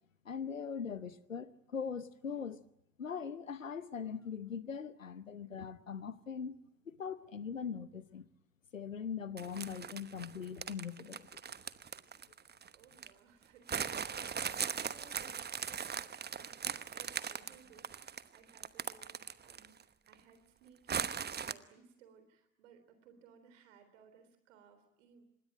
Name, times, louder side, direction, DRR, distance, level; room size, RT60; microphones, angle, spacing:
voice 1, 0.2-2.6 3.0-6.5 6.9-8.3 8.7-11.3, left 6 dB, 85° left, 0.9 m, -41 dB
sound 1, 9.4-13.1 13.7-19.8 20.1-20.2 20.9-21.5, right 7 dB, 25° right, 1.0 m, -39 dB
voice 2, 11.7-12.2 12.7-16.0 16.3-16.6 16.9-25.2, right 6 dB, 70° right, 3.8 m, -62 dB
26.0 x 20.5 x 9.1 m
figure-of-eight pair, 50°, 38 cm